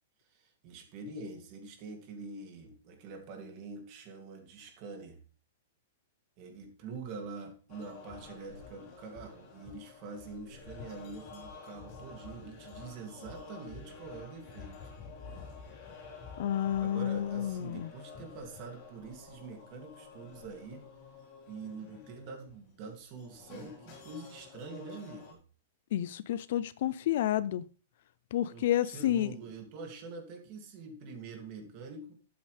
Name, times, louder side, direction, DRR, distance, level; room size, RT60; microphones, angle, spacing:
voice 1, 0.3-5.2 6.4-14.8 16.8-20.9 21.5-25.4 28.5-32.1, right 4 dB, 30° right, 2.5 m, -45 dB
sound 1, 7.7-25.3, left 4 dB, 35° left, 4.0 m, -50 dB
voice 2, 16.4-17.9 25.9-27.7 28.3-29.3, left 11 dB, 50° left, 0.5 m, -30 dB
12.0 x 8.7 x 3.4 m
supercardioid pair, 170°, 0 cm